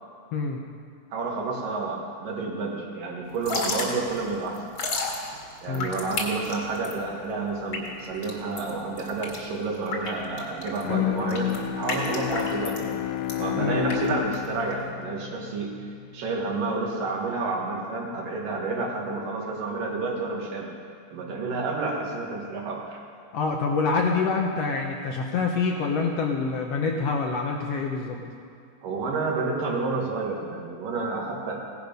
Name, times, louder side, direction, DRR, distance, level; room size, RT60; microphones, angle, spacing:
voice 1, 1.1-4.6 5.6-13.0 13.3-15.8 16.1-20.7 21.1-23.0 28.8-31.6, right 3 dB, 75° right, -1 dB, 3.2 m, -30 dB
Drip / Trickle dribble, 3.3-14.9, left 3 dB, 45° left, 2.2 m, -33 dB
Bowed string instrument, 10.8-15.9, left 12 dB, 90° left, 2.3 m, -30 dB
voice 2, 23.3-28.2, left 4 dB, 70° left, 2 dB, 1.5 m, -26 dB
17.0 x 11.0 x 5.3 m, 2.3 s
omnidirectional pair, 3.9 m